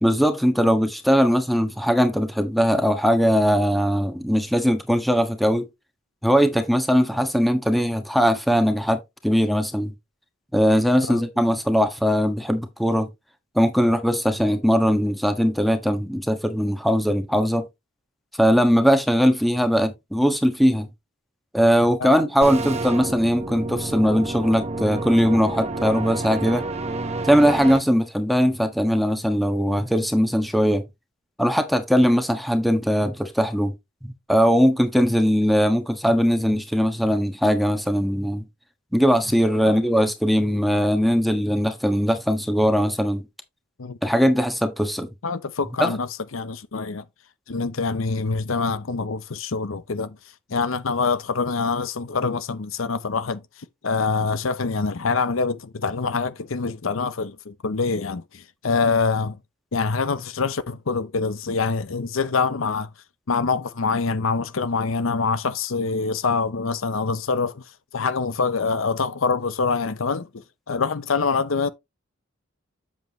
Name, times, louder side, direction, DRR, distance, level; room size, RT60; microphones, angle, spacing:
voice 1, 0.0-5.6 6.2-9.9 10.5-13.1 13.5-17.6 18.4-20.9 21.5-26.6 27.2-30.8 31.4-33.7 34.0-38.4 38.9-43.2 44.0-45.1 45.8-46.0, equal, ahead, 1.3 m, -20 dB
sound 1, 22.4-27.8, right 2 dB, 30° right, 1.2 m, -29 dB
voice 2, 45.2-47.0 47.5-50.2 50.5-53.4 53.8-59.4 59.7-62.9 63.3-67.6 67.9-70.3 70.7-71.7, left 4 dB, 75° left, 0.7 m, -25 dB
7.9 x 7.3 x 3.0 m
head